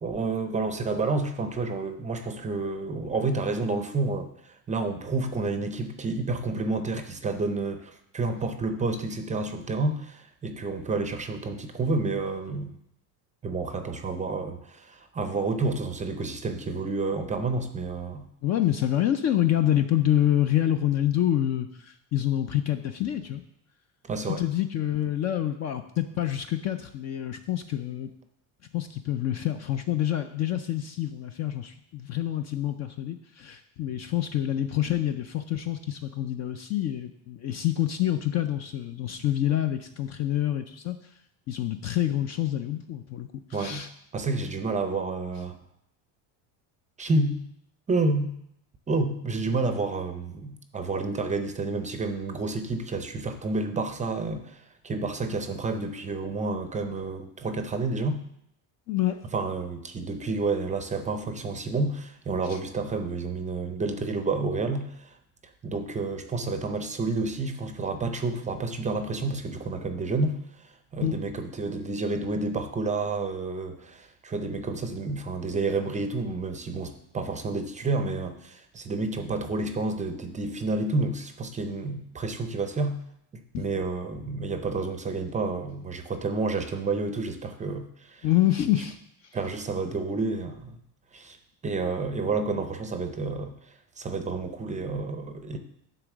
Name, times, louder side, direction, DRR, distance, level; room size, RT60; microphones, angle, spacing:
voice 1, 0.0-12.7 13.4-18.3 24.0-24.4 43.5-43.9 44.1-45.6 47.0-47.5 47.9-48.4 48.9-58.2 59.3-65.2 65.6-83.0 83.3-88.3 89.3-90.8 91.1-91.4 91.6-95.6, right 3 dB, 15° right, 7 dB, 0.5 m, -30 dB
voice 2, 18.4-23.4 24.4-28.1 28.7-41.0 41.5-43.9 58.9-59.2 62.5-62.6 71.0-71.2 83.5-83.6 88.2-89.0 89.2-89.4, left 12 dB, 40° left, 8 dB, 0.4 m, -27 dB
10.0 x 3.9 x 6.0 m, 0.75 s
cardioid pair, 135°, 47 cm